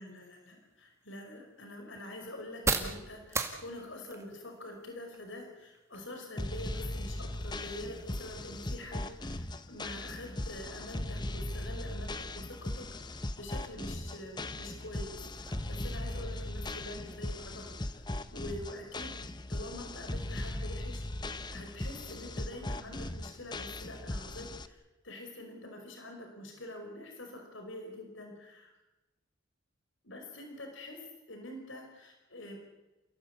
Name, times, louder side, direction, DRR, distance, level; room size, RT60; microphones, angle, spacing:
voice 1, 0.0-18.0 18.3-19.2 19.5-28.7 30.0-31.0 31.3-32.6, left 1 dB, 70° left, 3 dB, 5.3 m, -46 dB
sound 1, 0.5-18.1, right 3 dB, 15° right, 2.1 m, -43 dB
sound 2, 6.4-24.7, left 1 dB, 20° left, 0.9 m, -38 dB
29.0 x 17.0 x 8.3 m, 1.1 s
head